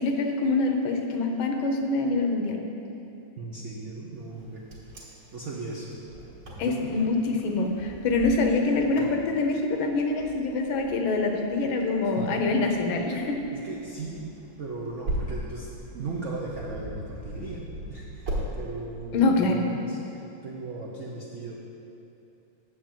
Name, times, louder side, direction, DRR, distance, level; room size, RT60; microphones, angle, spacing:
voice 1, 0.0-2.6 6.6-13.4 19.1-19.6, left 3 dB, 75° left, 3 dB, 1.5 m, -25 dB
voice 2, 3.4-4.6 5.3-6.0 6.6-6.9 12.2-12.4 13.5-14.2 14.6-17.6 17.9-21.6, right 3 dB, 75° right, -3 dB, 0.6 m, -37 dB
Wind, 4.3-18.5, right 1 dB, 55° right, 2.0 m, -39 dB
7.5 x 5.0 x 7.3 m, 2.8 s
omnidirectional pair, 2.3 m